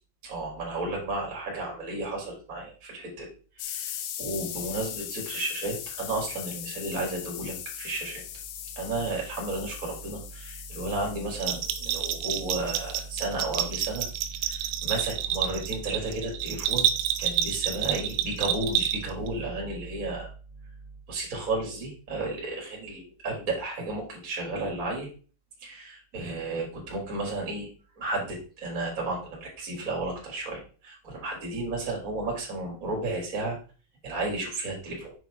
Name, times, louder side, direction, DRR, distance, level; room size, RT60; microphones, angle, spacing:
voice 1, 0.2-3.3 3.6-8.2 8.7-14.1 14.4-16.9 17.2-20.3 21.1-25.1 25.6-27.7 28.0-33.6 34.0-35.1, right 2 dB, 20° right, -1 dB, 3.0 m, -33 dB
sound 1, 3.6-14.2, left 10 dB, 75° left, 2.6 m, -40 dB
Bell, 11.4-19.3, right 10 dB, 90° right, 3.4 m, -29 dB
8.0 x 6.2 x 5.0 m, 0.37 s
omnidirectional pair, 5.9 m